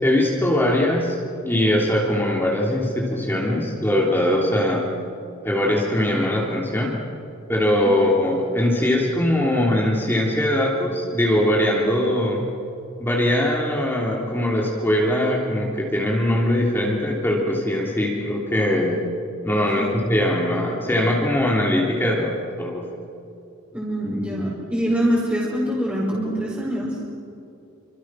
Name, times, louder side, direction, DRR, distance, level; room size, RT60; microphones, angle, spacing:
voice 1, 0.0-1.2 1.4-4.9 5.4-7.0 7.5-12.4 13.0-19.0 19.4-22.3 22.6-22.8, left 1 dB, 10° left, -3 dB, 3.2 m, -21 dB
voice 2, 23.7-26.9, equal, 5° right, -7 dB, 5.1 m, -24 dB
28.5 x 26.0 x 6.3 m, 2.6 s
head